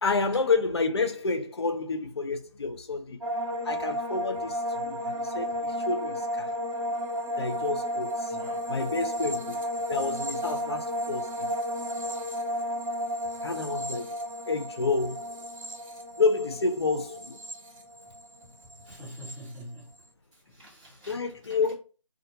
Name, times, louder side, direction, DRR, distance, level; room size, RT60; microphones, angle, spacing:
voice 1, 0.0-3.2 3.6-6.5 7.4-8.4 8.7-9.6 9.9-11.5 13.4-14.1 14.5-15.4 16.2-17.4 21.1-21.7, left 4 dB, 55° left, 0.6 m, -29 dB
sound 1, 3.2-18.4 18.7-19.3, equal, 85° right, 1.0 m, -33 dB
voice 2, 8.3-8.7 18.8-19.9 20.4-21.2 21.5-21.6, equal, 15° right, 1.0 m, -45 dB
2.4 x 2.2 x 2.9 m
figure-of-eight pair, 165°, 17 cm